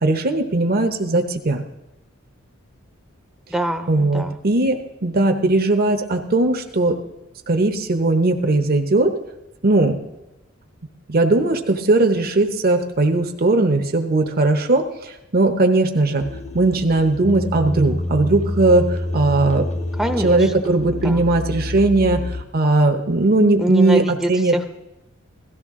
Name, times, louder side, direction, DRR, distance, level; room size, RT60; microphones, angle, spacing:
voice 1, 0.0-1.6 3.9-7.0 7.5-9.1 9.6-10.0 11.1-16.2 16.5-19.7 20.2-24.6, right 2 dB, 45° right, 5 dB, 0.9 m, -18 dB
voice 2, 3.5-4.4 20.0-20.7 21.0-21.2 23.6-24.7, right 1 dB, ahead, 4 dB, 0.7 m, -25 dB
sound 1, 16.2-22.4, left 2 dB, 30° left, 0.7 m, -28 dB
17.0 x 13.5 x 3.7 m, 0.97 s
head